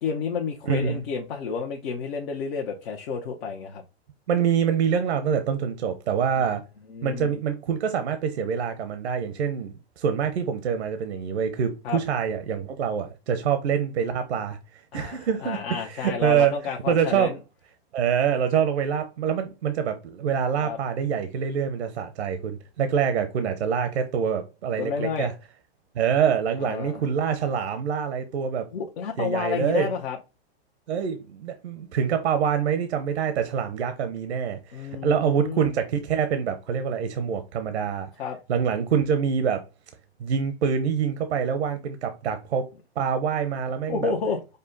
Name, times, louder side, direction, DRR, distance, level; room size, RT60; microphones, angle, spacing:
voice 1, 0.0-3.8 6.9-7.3 11.8-12.0 14.9-17.4 20.6-20.8 24.8-25.3 26.6-27.0 28.7-30.2 34.7-35.7 38.2-38.4 43.9-44.4, left 6 dB, 60° left, 1.0 m, -30 dB
voice 2, 0.7-1.0 4.3-6.6 7.0-14.6 14.9-16.6 16.9-17.3 17.9-25.3 26.0-28.7 29.2-29.9 30.9-38.1 38.5-39.6 40.2-42.7 43.0-44.1, right 7 dB, 75° right, 0.8 m, -25 dB
5.3 x 2.2 x 3.9 m
hypercardioid pair, 115°, 33 cm